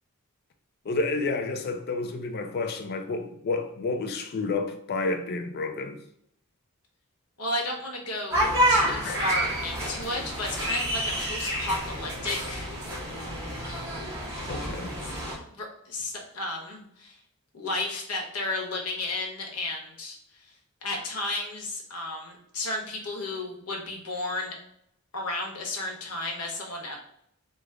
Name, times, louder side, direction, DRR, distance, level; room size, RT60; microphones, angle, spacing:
voice 1, 0.9-6.0 9.0-9.2 14.5-15.0, left 3 dB, 45° left, 0.4 m, -30 dB
voice 2, 7.4-8.4 8.7-12.7 15.5-17.2 17.5-20.5 20.8-24.6 25.1-27.0, left 2 dB, 80° left, 0.9 m, -33 dB
sound 1, 8.3-15.4, equal, 10° right, 1.2 m, -28 dB
3.2 x 2.0 x 3.5 m
head